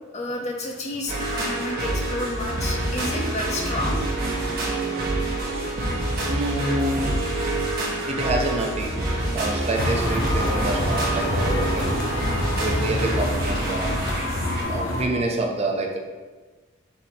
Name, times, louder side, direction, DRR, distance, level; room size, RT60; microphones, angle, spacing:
voice 1, 0.1-4.0, left 2 dB, 35° left, 0 dB, 0.7 m, -30 dB
sound 1, 1.1-14.6, right 1 dB, 50° right, 1.0 m, -27 dB
voice 2, 6.3-7.1 8.1-8.9 9.3-11.9 12.6-13.9 14.7-16.0, right 1 dB, 30° right, 1 dB, 0.5 m, -27 dB
sound 2, 9.7-15.0, left 1 dB, 70° left, 0.7 m, -27 dB
4.2 x 2.7 x 4.6 m, 1.3 s
head